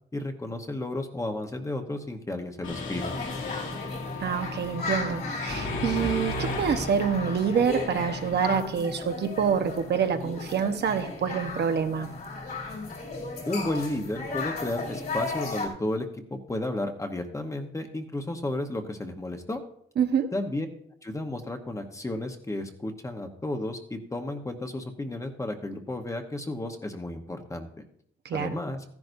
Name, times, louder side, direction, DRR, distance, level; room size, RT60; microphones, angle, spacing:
voice 1, 0.1-3.2 13.5-19.6 20.3-20.7 21.0-27.8 28.3-28.8, left 1 dB, 15° left, 5 dB, 1.0 m, -33 dB
Mechanisms, 2.6-8.5, left 2 dB, 85° left, 2.2 m, -34 dB
sound 1, 3.0-15.7, left 3 dB, 50° left, 2.7 m, -36 dB
voice 2, 4.2-12.1 20.0-20.3 28.2-28.6, right 7 dB, 60° right, 6 dB, 1.0 m, -27 dB
14.5 x 10.5 x 2.7 m, 0.67 s
cardioid pair, 135°, 20 cm